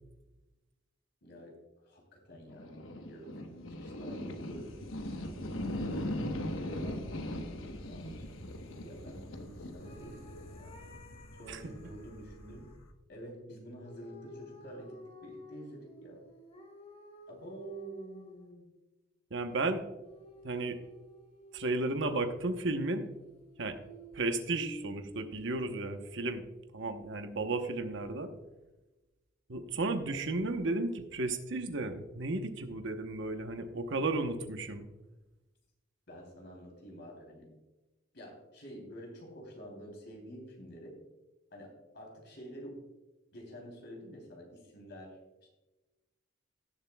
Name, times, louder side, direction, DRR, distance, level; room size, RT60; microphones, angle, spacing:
voice 1, 1.2-1.6 1.8-7.1 7.3-10.7 11.3-12.7 13.1-16.2 17.3-18.7 36.1-37.6 38.1-41.0 41.5-42.8 43.3-45.5, right 1 dB, 60° left, 0 dB, 3.2 m, -49 dB
sound 1, 2.5-12.9, left 1 dB, 90° left, 1.1 m, -40 dB
sound 2, 9.8-12.8 13.8-18.6 20.0-26.1, equal, 30° left, 1.2 m, -51 dB
voice 2, 19.3-19.8 20.4-20.8 21.5-23.1 23.6-23.8 24.1-26.5 26.7-28.3 29.5-34.9, right 2 dB, 65° right, 7 dB, 1.0 m, -33 dB
17.5 x 7.4 x 2.3 m, 1.1 s
head